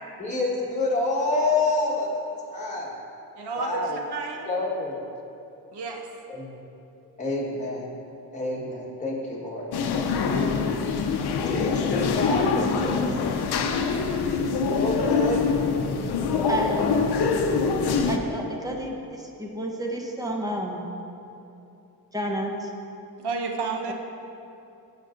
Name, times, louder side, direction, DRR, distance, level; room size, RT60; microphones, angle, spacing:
voice 1, 0.2-2.2 2.5-2.9 3.5-4.0 4.5-5.0 6.3-6.5 7.2-7.9 8.3-9.6 11.4-13.2 14.7-15.5, left 2 dB, 20° left, -5 dB, 1.4 m, -28 dB
voice 2, 3.4-4.5 5.7-6.1 23.2-23.9, right 4 dB, 80° right, 2 dB, 1.0 m, -31 dB
sound 1, 9.7-18.2, left 5 dB, 75° left, 0.6 m, -24 dB
voice 3, 16.5-17.1 18.1-19.0 19.4-20.9 22.1-22.7, right 1 dB, 10° right, 0 dB, 0.8 m, -30 dB
15.5 x 5.5 x 2.6 m, 2.8 s
wide cardioid pair, 135°, 39 cm